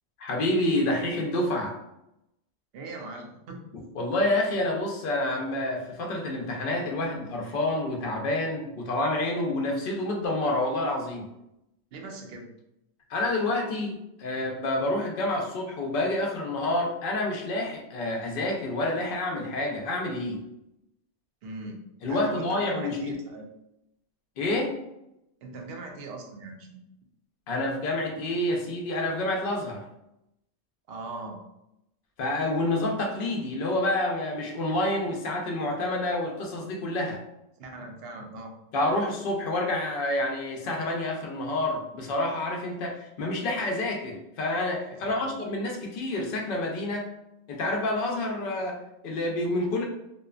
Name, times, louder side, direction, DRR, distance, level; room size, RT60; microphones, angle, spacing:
voice 1, 0.2-1.7 4.0-11.3 13.1-20.4 22.0-23.2 24.4-24.8 27.5-29.8 32.2-37.2 38.7-47.1 47.5-49.8, left 1 dB, 60° left, 0 dB, 0.7 m, -28 dB
voice 2, 2.7-3.6 11.9-12.5 21.4-23.5 25.4-26.8 30.9-31.4 37.6-38.5 45.0-45.4, right 2 dB, 65° right, 2 dB, 0.7 m, -40 dB
2.7 x 2.2 x 2.3 m, 0.85 s
omnidirectional pair, 1.1 m